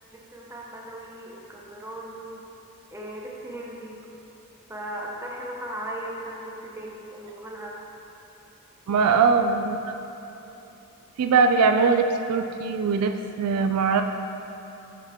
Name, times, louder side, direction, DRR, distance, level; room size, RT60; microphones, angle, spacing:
voice 1, 0.1-2.4 2.9-4.0 4.7-7.8, right 1 dB, 10° right, -3 dB, 0.8 m, -37 dB
voice 2, 8.9-9.8 11.2-14.0, right 5 dB, 85° right, 6 dB, 0.4 m, -21 dB
7.2 x 5.7 x 3.5 m, 3.0 s
head